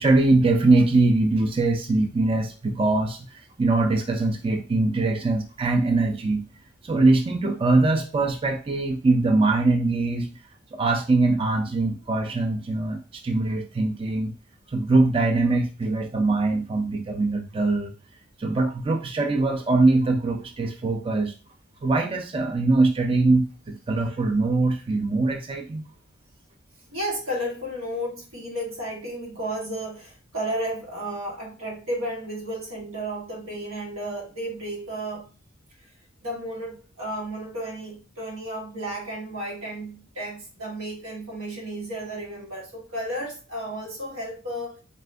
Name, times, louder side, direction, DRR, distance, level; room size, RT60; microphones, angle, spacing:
voice 1, 0.0-6.5 6.8-10.3 10.7-14.3 14.7-17.9 18.4-21.3 21.8-25.8, right 2 dB, 25° right, 0.4 m, -22 dB
voice 2, 26.9-35.3 36.2-44.8, right 1 dB, 90° right, 1.4 m, -33 dB
4.2 x 2.5 x 3.3 m
head